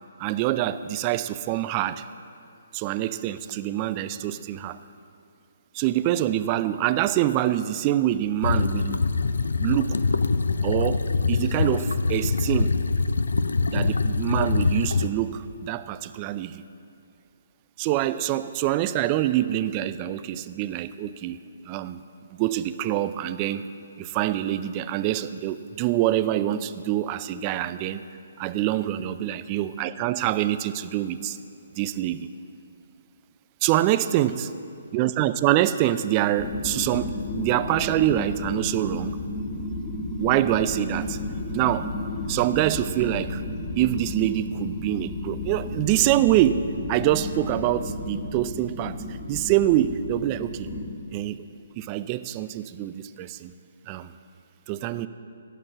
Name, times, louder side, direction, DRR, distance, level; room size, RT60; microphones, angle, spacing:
voice 1, 0.2-2.0 2.7-4.8 5.7-9.0 9.6-10.0 10.6-12.7 13.7-16.6 17.8-21.4 21.7-22.0 22.3-23.6 24.0-28.0 28.4-31.4 31.8-32.3 33.6-34.5 34.9-39.2 40.2-41.2 41.5-41.9 42.3-43.4 43.7-49.0 49.3-50.7 51.1-51.4 51.8-53.5 53.9-54.1 54.7-55.1, right 13 dB, 30° right, 12 dB, 0.3 m, -25 dB
sound 1, 8.4-15.1, left 4 dB, 80° left, 0.4 m, -24 dB
sound 2, 36.4-50.8, left 2 dB, 25° left, 1.3 m, -33 dB
9.9 x 6.1 x 5.6 m, 2.6 s
hypercardioid pair, 140°, 0 cm